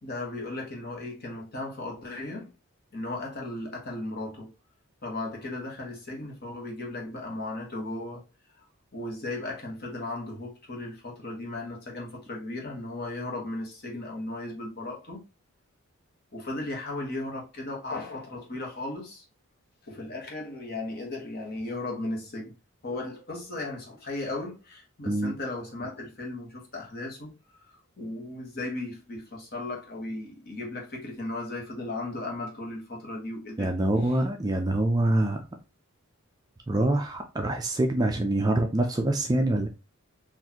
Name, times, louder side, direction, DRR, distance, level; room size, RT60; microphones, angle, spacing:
voice 1, 0.0-2.5 2.9-4.5 5.0-8.2 8.9-15.2 16.3-19.2 19.9-22.5 22.8-27.3 27.6-33.7, left 2 dB, 45° left, 1.1 m, -36 dB
voice 2, 33.6-35.4 36.7-39.7, right 1 dB, 15° right, 0.3 m, -25 dB
4.0 x 2.5 x 2.8 m
head